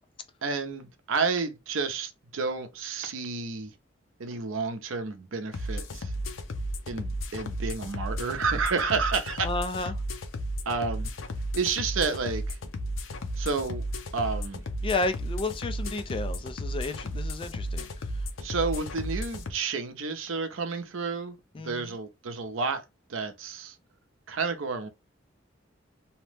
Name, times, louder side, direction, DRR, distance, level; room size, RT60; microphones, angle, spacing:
voice 1, 0.4-3.7 4.2-6.1 6.9-9.9 10.7-11.1 11.5-12.6 13.4-13.8 14.1-14.6 18.4-21.4 21.6-22.8 23.1-23.8 24.3-24.9, right 4 dB, 90° right, 0.6 m, -30 dB
sound 1, 5.5-19.5, equal, 85° left, 0.5 m, -34 dB
voice 2, 9.4-10.0 14.8-17.9 21.6-21.9, left 3 dB, 25° left, 0.3 m, -32 dB
2.8 x 2.0 x 3.2 m
head